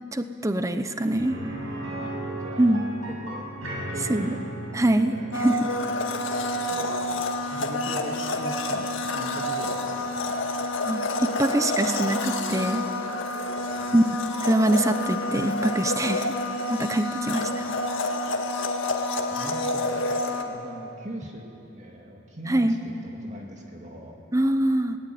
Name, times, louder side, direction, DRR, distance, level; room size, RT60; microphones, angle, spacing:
voice 1, 0.1-1.4 2.6-2.8 4.1-4.3 4.7-5.1 5.4-5.7 10.8-12.8 13.9-14.0 14.4-16.3 16.7-17.6 22.5-22.8 24.3-25.0, right 1 dB, 15° right, 8 dB, 0.8 m, -23 dB
sound 1, 1.2-10.9 11.2-11.3 13.8-13.9, right 1 dB, 85° right, 7.6 m, -38 dB
voice 2, 2.0-3.5 3.9-4.5 5.0-5.5 6.7-6.9 7.5-10.5 13.6-14.2 17.2-17.7 19.2-20.2 20.5-21.5 21.8-24.2, right 1 dB, 35° right, 0 dB, 2.2 m, -41 dB
Domestic sounds home sounds, 5.3-20.4, left 2 dB, 70° left, 1.9 m, -28 dB
22.0 x 19.0 x 9.3 m, 3.0 s
head